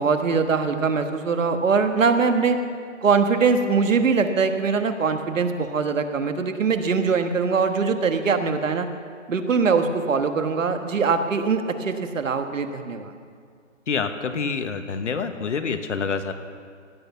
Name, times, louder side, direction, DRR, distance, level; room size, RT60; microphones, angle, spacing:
voice 1, 0.0-2.6 3.0-8.9 9.3-13.1, right 5 dB, 75° right, 7 dB, 1.4 m, -22 dB
voice 2, 13.9-16.3, left 5 dB, 65° left, 8 dB, 1.3 m, -27 dB
16.5 x 8.5 x 7.0 m, 2.1 s
hypercardioid pair, 170°, 39 cm